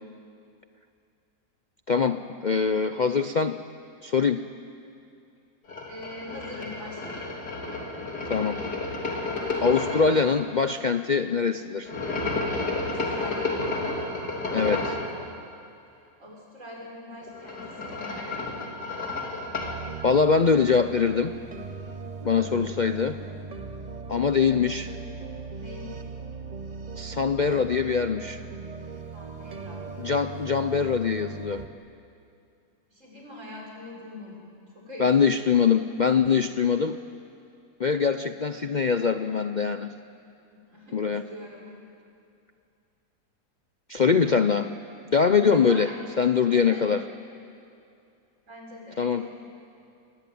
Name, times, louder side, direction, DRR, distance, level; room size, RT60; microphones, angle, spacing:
voice 1, 1.9-3.6 4.0-4.4 8.3-8.6 9.6-11.9 14.5-15.0 20.0-21.4 22.2-23.2 24.1-24.9 26.9-28.4 30.0-31.6 35.0-37.0 37.8-39.9 40.9-41.2 43.9-44.7 45.1-45.9 46.2-47.0 49.0-49.3, left 5 dB, 55° left, 9 dB, 0.5 m, -23 dB
sound 1, 5.7-10.2 11.9-15.1 17.2-19.8, left 2 dB, 85° left, 3.9 m, -31 dB
voice 2, 5.9-7.2 12.8-13.9 15.9-18.7 22.3-22.6 25.6-26.0 29.1-29.9 32.9-34.5 34.7-35.3 40.7-41.7 45.5-46.0 46.5-46.8 48.5-49.3, left 1 dB, 50° right, -2 dB, 6.8 m, -43 dB
sound 2, 19.6-31.7, right 4 dB, 30° right, 1.0 m, -39 dB
28.5 x 20.5 x 9.4 m, 2.5 s
omnidirectional pair, 1.7 m